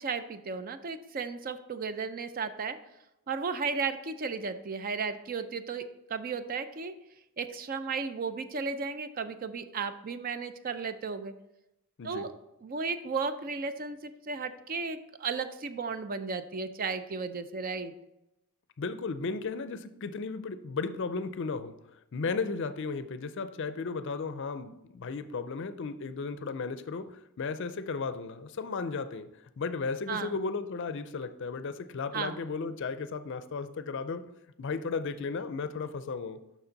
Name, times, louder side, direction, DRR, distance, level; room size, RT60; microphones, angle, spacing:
voice 1, 0.0-2.8 3.3-5.8 6.1-6.9 7.4-11.3 12.0-12.3 12.6-17.9 30.1-30.3 32.1-32.4, right 5 dB, 40° right, 10 dB, 0.4 m, -34 dB
voice 2, 18.8-21.7 22.1-29.3 29.6-34.2 34.6-36.4, left 4 dB, 55° left, 11 dB, 0.4 m, -35 dB
7.0 x 5.9 x 3.9 m, 0.89 s
head